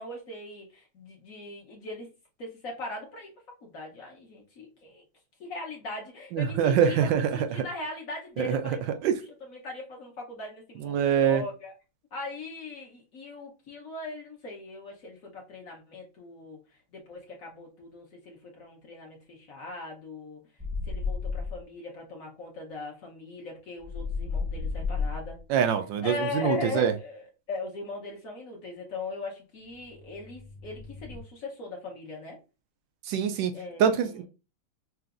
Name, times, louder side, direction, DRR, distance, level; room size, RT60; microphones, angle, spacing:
voice 1, 0.0-2.1 2.4-3.3 3.6-5.0 5.4-9.1 9.5-11.7 12.1-20.4 20.8-25.4 26.0-32.4 33.5-34.2, left 3 dB, 50° left, 1.2 m, -39 dB
voice 2, 6.3-7.2 7.5-7.7 8.4-8.6 9.0-9.1 10.8-11.4 25.5-26.9 33.1-33.5 33.8-34.3, right 8 dB, 75° right, 1.2 m, -24 dB
sound 1, 20.6-21.6 23.8-25.4 29.6-31.2, left 4 dB, 15° left, 0.8 m, -33 dB
5.7 x 2.5 x 2.5 m
omnidirectional pair, 2.2 m